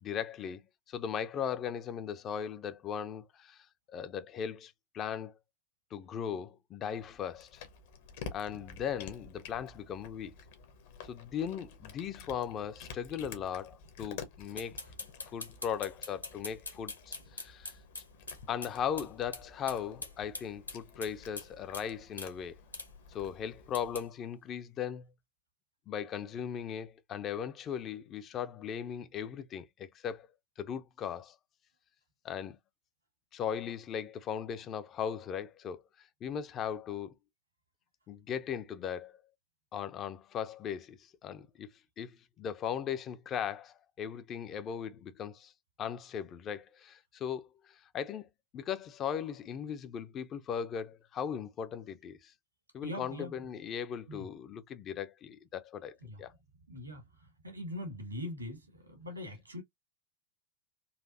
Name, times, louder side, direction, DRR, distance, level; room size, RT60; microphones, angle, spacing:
voice 1, 0.0-0.6 0.9-5.4 5.9-7.6 8.3-10.3 11.0-14.8 15.3-17.7 18.5-22.6 23.1-25.1 25.9-30.3 30.6-31.4 32.2-32.6 33.3-37.1 38.1-39.2 39.7-41.7 42.0-45.5 45.8-48.3 48.5-52.3 52.7-56.3, left 8 dB, 30° left, 0.5 m, -38 dB
Cat, 6.9-24.1, left 5 dB, 55° left, 0.9 m, -51 dB
sound 1, 14.6-18.7 19.0-19.1 19.3-19.4 19.7-21.5 21.7-21.9 22.2-22.3 22.7-22.9 23.7-24.0, left 3 dB, 80° left, 0.9 m, -42 dB
voice 2, 52.8-53.3 54.1-54.3 56.1-56.2 56.7-57.0 57.4-59.6, left 1 dB, 85° right, 1.7 m, -41 dB
4.1 x 2.6 x 2.5 m
figure-of-eight pair, 90°, 0 cm